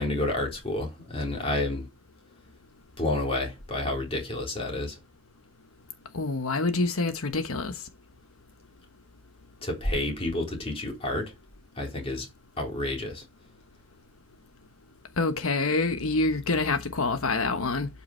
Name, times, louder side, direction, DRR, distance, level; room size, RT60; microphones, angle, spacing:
voice 1, 0.0-1.8 3.0-5.0 9.6-11.3 11.8-12.3 12.6-13.2, left 2 dB, 25° left, 3.9 m, -29 dB
voice 2, 6.1-7.7 15.2-17.9, left 3 dB, 85° left, 1.1 m, -26 dB
12.0 x 5.8 x 4.4 m
head